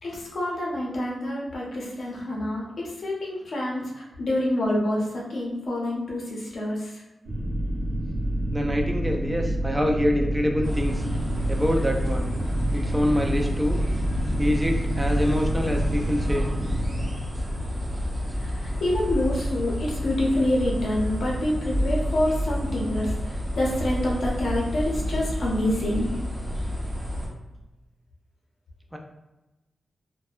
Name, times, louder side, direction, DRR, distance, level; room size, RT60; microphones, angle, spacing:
voice 1, 0.0-7.0 18.4-26.1, left 1 dB, 60° left, -3 dB, 0.6 m, -27 dB
sound 1, 7.2-17.0, right 1 dB, 75° right, 0.6 m, -28 dB
voice 2, 8.5-10.9 11.5-12.3 12.7-13.8 14.4-16.5 28.9-29.0, equal, 10° right, 1 dB, 0.3 m, -25 dB
sound 2, 10.6-27.3, equal, 30° right, 1.4 m, -29 dB
2.6 x 2.1 x 2.3 m, 1.0 s
wide cardioid pair, 145°, 0 cm